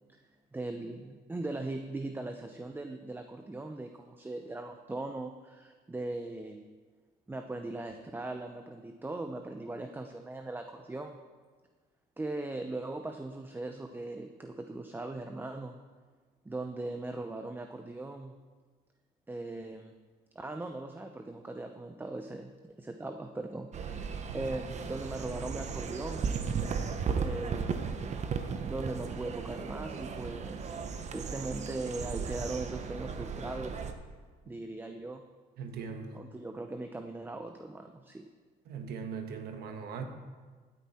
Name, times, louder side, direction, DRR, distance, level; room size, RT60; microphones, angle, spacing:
voice 1, 0.5-6.6 7.3-11.2 12.2-15.8 16.4-18.3 19.3-19.9 20.3-24.1 24.3-26.2 27.1-27.9 28.7-30.7 31.1-33.8 34.5-35.2 36.1-38.3, right 2 dB, 10° right, 6 dB, 0.7 m, -39 dB
sound 1, 23.7-33.9, right 5 dB, 40° right, 1.0 m, -36 dB
voice 2, 35.6-36.1 38.7-40.1, right 6 dB, 70° right, 5 dB, 1.5 m, -39 dB
15.0 x 9.2 x 4.4 m, 1.5 s
cardioid pair, 110°, 17 cm